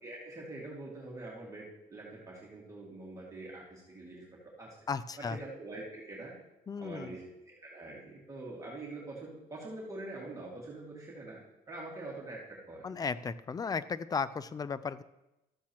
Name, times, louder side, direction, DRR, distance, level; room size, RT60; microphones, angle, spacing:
voice 1, 0.0-4.8 5.2-6.4 6.8-11.4 11.7-13.0, right 2 dB, 20° right, -5 dB, 2.0 m, -45 dB
voice 2, 4.9-5.4 6.7-7.2 12.8-15.0, left 5 dB, 20° left, 15 dB, 0.4 m, -35 dB
13.0 x 7.3 x 2.9 m, 0.93 s
cardioid pair, 110°, 17 cm